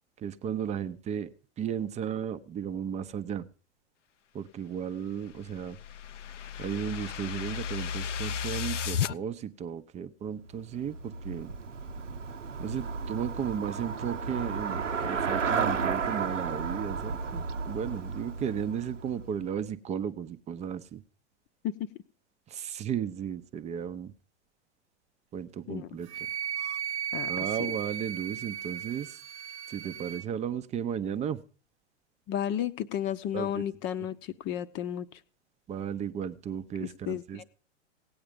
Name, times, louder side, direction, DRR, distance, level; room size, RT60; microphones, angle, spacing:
voice 1, 0.2-3.5 4.3-5.8 6.6-11.5 12.6-21.0 22.5-24.1 25.3-26.1 27.3-29.2 29.7-31.4 33.3-33.6 35.7-37.4, right 8 dB, 20° right, 13 dB, 0.7 m, -35 dB
sound 1, 5.1-9.1, left 8 dB, 80° left, 0.6 m, -34 dB
Traffic noise roadway noise / Bicycle, 10.4-19.6, right 5 dB, 90° right, 1.0 m, -33 dB
Wind instrument woodwind instrument, 26.1-30.2, right 9 dB, 65° right, 0.7 m, -36 dB
voice 2, 32.3-35.2 36.8-37.4, left 10 dB, 30° left, 12 dB, 0.8 m, -33 dB
17.0 x 8.7 x 5.1 m, 0.40 s
hypercardioid pair, 110°, 36 cm